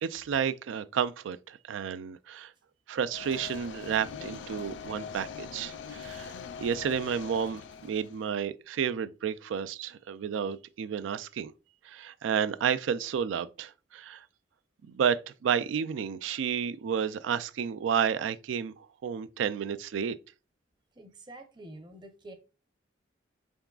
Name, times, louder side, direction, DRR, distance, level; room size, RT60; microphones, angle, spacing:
voice 1, 0.0-2.5 2.9-11.5 11.8-14.3 14.9-20.2, right 7 dB, 90° right, 0.3 m, -31 dB
sound 1, 3.1-8.3, left 6 dB, 75° left, 0.4 m, -42 dB
voice 2, 20.9-22.3, right 1 dB, 25° right, 0.6 m, -47 dB
4.6 x 3.6 x 2.3 m
head